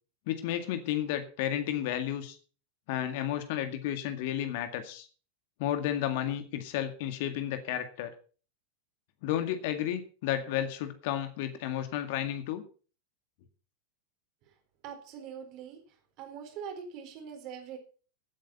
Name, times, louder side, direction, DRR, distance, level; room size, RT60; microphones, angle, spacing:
voice 1, 0.3-2.4 2.9-5.1 5.6-8.1 9.2-12.6, left 11 dB, 50° left, 8 dB, 2.0 m, -32 dB
voice 2, 14.8-15.8 16.2-17.8, right 7 dB, 40° right, 5 dB, 4.1 m, -42 dB
15.0 x 9.3 x 5.6 m, 0.38 s
figure-of-eight pair, 90°, 0 cm